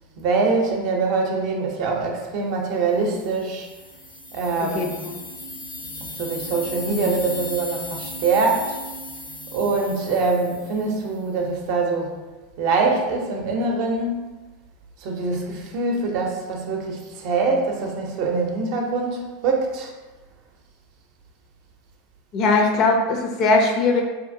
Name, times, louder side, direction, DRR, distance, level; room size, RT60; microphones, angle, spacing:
voice 1, 0.2-3.7 4.3-5.0 6.0-8.8 9.5-12.1 12.6-14.2 15.0-19.9, right 3 dB, 60° right, 1 dB, 0.5 m, -24 dB
sound 1, 3.2-11.1, left 1 dB, 75° left, 1.0 m, -37 dB
voice 2, 4.7-5.2 22.3-24.0, left 3 dB, 50° left, 2 dB, 0.5 m, -20 dB
2.7 x 2.4 x 2.6 m, 1.2 s
hypercardioid pair, 100°, 0 cm